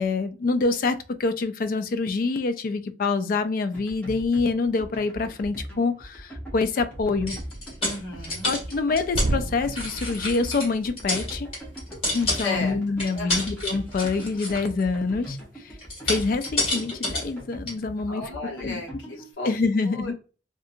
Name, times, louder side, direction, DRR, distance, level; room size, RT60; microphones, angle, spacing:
voice 1, 0.0-7.4 8.4-11.5 12.0-15.4 16.1-18.3 18.6-18.8 19.4-20.1, left 4 dB, 50° left, 0.3 m, -26 dB
sound 1, 3.7-19.3, equal, 10° left, 0.7 m, -40 dB
sound 2, 7.0-16.7 17.0-17.2 17.7-18.4, right 1 dB, 45° right, 0.3 m, -37 dB
sound 3, 7.3-9.3 9.6-10.7 11.0-12.7 13.0-14.8 15.8-17.3 17.7-17.8, left 2 dB, 35° left, 1.5 m, -29 dB
voice 2, 7.8-8.5 12.3-12.8 13.1-13.4 18.1-19.5 19.8-20.1, left 2 dB, 80° left, 1.0 m, -34 dB
2.7 x 2.4 x 2.4 m
head